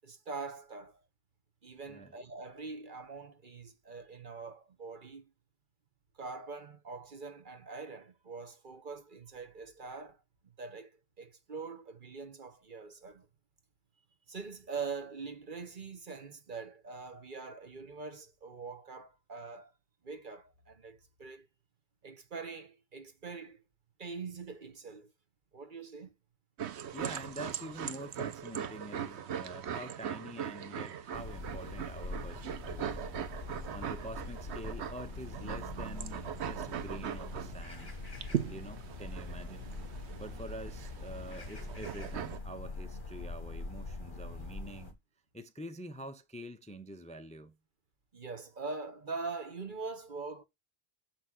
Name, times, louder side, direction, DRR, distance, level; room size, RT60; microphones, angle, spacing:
voice 1, 0.0-1.0 1.6-5.3 6.2-10.2 10.6-10.9 11.2-13.3 14.3-19.7 20.0-21.5 22.0-23.6 24.0-25.1 25.5-26.1 48.1-50.4, right 4 dB, 50° right, 1.3 m, -43 dB
sound 1, 26.6-42.4, right 9 dB, 90° right, 1.1 m, -40 dB
voice 2, 26.9-33.0 33.7-37.9 38.5-39.7 40.2-45.0 45.3-47.6, right 1 dB, 10° left, 0.6 m, -46 dB
sound 2, 31.1-44.9, left 3 dB, 50° left, 2.3 m, -43 dB
6.5 x 6.1 x 6.1 m
omnidirectional pair, 1.1 m